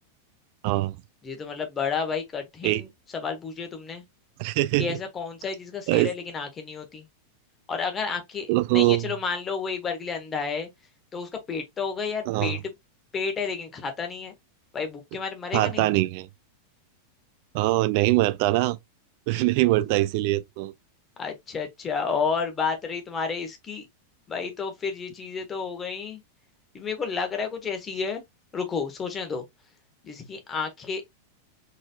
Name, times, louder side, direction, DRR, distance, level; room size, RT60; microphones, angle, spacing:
voice 1, 0.6-1.0 2.6-2.8 4.4-5.0 5.9-6.1 8.5-9.1 12.3-12.6 15.5-16.3 17.5-18.8 19.3-20.7, right 18 dB, 45° right, 0.4 m, -23 dB
voice 2, 1.2-4.0 4.8-7.0 7.7-10.7 11.1-12.6 13.1-14.3 14.7-15.9 19.3-19.5 21.2-23.9 24.3-26.2 26.7-28.2 28.5-29.4 30.0-31.0, left 5 dB, 20° left, 1.2 m, -31 dB
3.9 x 3.8 x 2.2 m
figure-of-eight pair, 90°, 0 cm